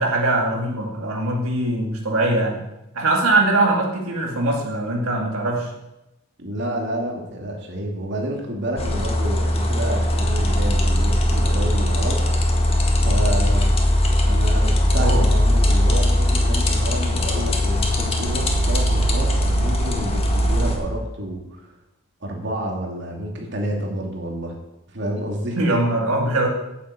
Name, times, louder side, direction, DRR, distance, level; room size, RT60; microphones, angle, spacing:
voice 1, 0.0-2.6 2.9-5.7 15.0-15.3 25.6-26.5, right 2 dB, 85° right, -1 dB, 2.2 m, -21 dB
voice 2, 6.4-12.2 13.0-13.7 14.3-21.7 22.2-24.5 24.9-25.7 26.2-26.3, right 1 dB, 55° right, 0 dB, 2.6 m, -29 dB
sound 1, 8.8-20.8, left 1 dB, 30° left, 1.8 m, -19 dB
9.5 x 8.2 x 8.2 m, 0.91 s
head